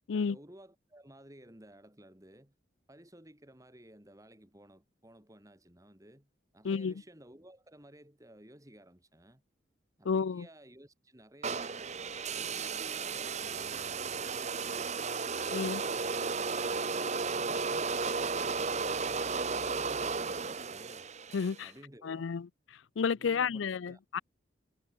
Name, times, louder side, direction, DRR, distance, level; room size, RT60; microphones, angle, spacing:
voice 1, 0.1-2.5 2.9-9.4 10.0-14.9 17.2-21.1 21.6-22.3 23.1-24.0, right 1 dB, 20° right, 3.7 m, -56 dB
voice 2, 10.1-10.5 15.5-15.8 21.3-21.7 22.0-22.5 23.0-24.2, left 5 dB, 85° left, 0.5 m, -31 dB
sound 1, 11.4-21.6, right 4 dB, 35° right, 1.2 m, -34 dB
head